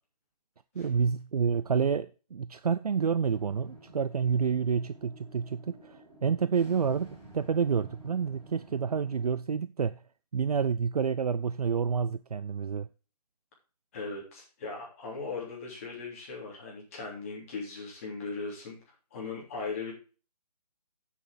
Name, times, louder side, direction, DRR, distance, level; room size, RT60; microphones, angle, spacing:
voice 1, 0.7-10.0 10.3-12.9, right 6 dB, 65° right, 0.5 m, -29 dB
sound 1, 3.3-9.3, right 2 dB, 5° right, 5.1 m, -51 dB
voice 2, 13.9-18.8 19.1-19.9, left 4 dB, 20° left, 3.2 m, -38 dB
8.4 x 7.0 x 5.0 m
hypercardioid pair, 175°, 21 cm